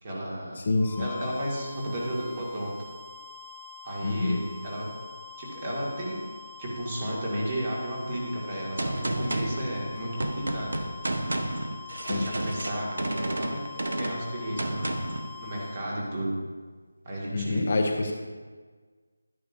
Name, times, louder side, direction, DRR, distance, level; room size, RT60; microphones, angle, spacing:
voice 1, 0.0-0.6 1.0-2.7 3.8-4.9 5.4-6.2 6.6-10.9 12.0-13.6 14.0-14.9 15.4-16.3 17.0-17.6, right 1 dB, 25° right, -5 dB, 2.1 m, -33 dB
voice 2, 0.7-1.1 4.0-4.4 12.1-12.3 17.3-18.1, left 3 dB, 35° left, 1 dB, 0.8 m, -26 dB
sound 1, 0.8-16.1, left 7 dB, 5° right, 0.4 m, -44 dB
Gunshot gunfire, 8.8-15.3, right 1 dB, 75° right, 1.0 m, -31 dB
11.5 x 10.0 x 2.7 m, 1.5 s
figure-of-eight pair, 175°, 0 cm